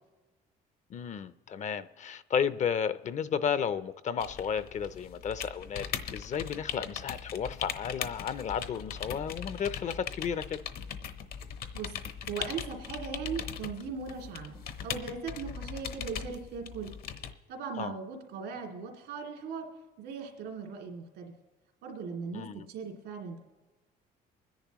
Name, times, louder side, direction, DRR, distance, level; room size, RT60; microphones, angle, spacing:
voice 1, 0.9-10.6 17.8-17.9 22.3-22.7, left 7 dB, 45° left, 0.6 m, -33 dB
sound 1, 4.2-17.3, left 7 dB, 65° left, 0.9 m, -40 dB
voice 2, 12.3-16.9 17.5-19.7 20.0-21.3 21.8-23.4, right 5 dB, 85° right, 2.6 m, -39 dB
24.0 x 10.5 x 3.0 m
cardioid pair, 110°, 17 cm